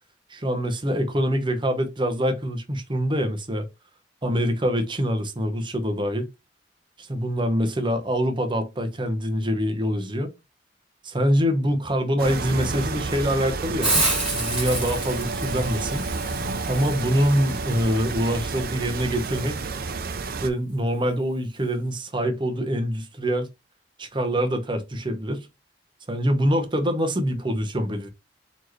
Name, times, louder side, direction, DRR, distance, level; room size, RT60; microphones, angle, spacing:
voice 1, 0.3-3.7 4.2-6.3 7.0-10.3 11.0-13.9 14.3-16.1 16.7-19.6 20.4-23.5 24.0-25.5 26.1-28.1, equal, 30° right, 0.9 m, -25 dB
sound 1, 12.2-20.5, right 3 dB, 55° right, 0.5 m, -30 dB
Hiss, 13.8-19.4, right 2 dB, 5° right, 1.9 m, -30 dB
4.3 x 3.0 x 3.1 m
head